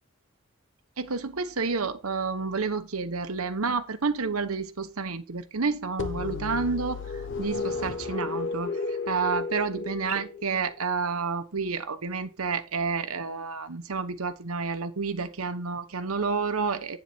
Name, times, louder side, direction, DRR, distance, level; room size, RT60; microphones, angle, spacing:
voice 1, 1.0-7.0 7.4-17.0, right 4 dB, 90° right, 1.1 m, -30 dB
sound 1, 6.0-10.7, left 4 dB, 60° left, 1.1 m, -33 dB
9.9 x 7.4 x 4.3 m
head